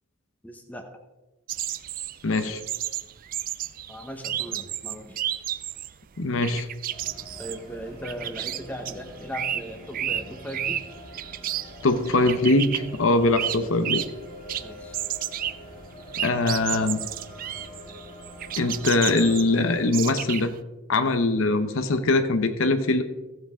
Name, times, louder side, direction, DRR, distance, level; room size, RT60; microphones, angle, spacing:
voice 1, 0.4-0.9 3.9-5.2 7.4-10.8 14.6-15.0, equal, 5° left, 4 dB, 1.0 m, -38 dB
sound 1, 1.5-5.9 6.2-14.2 14.5-20.6, right 11 dB, 40° right, 0.3 m, -32 dB
voice 2, 2.2-2.6 6.2-6.7 11.8-14.0 16.2-17.0 18.6-20.5 20.9-23.0, left 2 dB, 60° left, 9 dB, 0.8 m, -22 dB
sound 2, 6.9-19.6, left 1 dB, 35° left, 2.1 m, -44 dB
15.0 x 7.7 x 3.7 m, 1.1 s
head